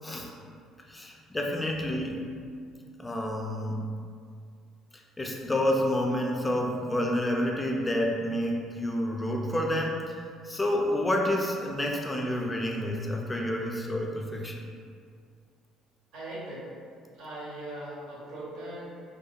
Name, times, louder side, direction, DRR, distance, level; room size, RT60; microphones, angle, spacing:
voice 1, 0.9-2.2 3.0-3.8 5.2-10.0 10.5-14.6, left 1 dB, 15° left, 0 dB, 0.3 m, -29 dB
voice 2, 16.1-16.7 17.1-18.9, right 1 dB, 75° right, -6 dB, 0.8 m, -39 dB
2.3 x 2.2 x 2.7 m, 2.2 s
supercardioid pair, 75°, 0 cm